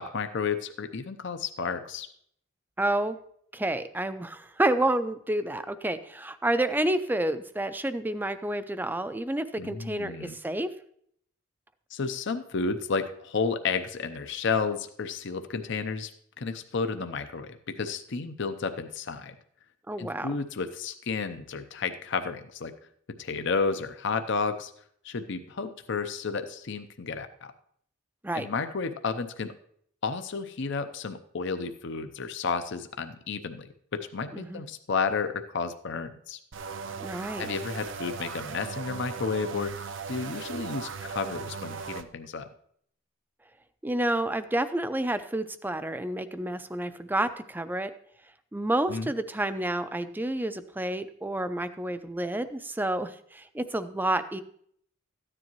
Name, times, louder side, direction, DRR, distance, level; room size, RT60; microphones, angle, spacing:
voice 1, 0.0-2.1 9.6-10.4 11.9-16.1 16.4-19.3 20.0-22.7 23.2-24.7 25.0-27.3 28.3-29.5 30.0-36.4 37.4-42.5 48.9-49.1, left 5 dB, 60° left, 9 dB, 0.6 m, -32 dB
voice 2, 2.8-3.2 3.5-10.7 19.9-20.4 28.2-28.5 34.3-34.6 37.0-37.5 43.8-47.9 48.5-54.4, right 1 dB, 10° right, 11 dB, 0.5 m, -29 dB
sound 1, 36.5-42.0, right 5 dB, 60° right, 0.6 m, -38 dB
14.0 x 9.9 x 3.0 m, 0.65 s
head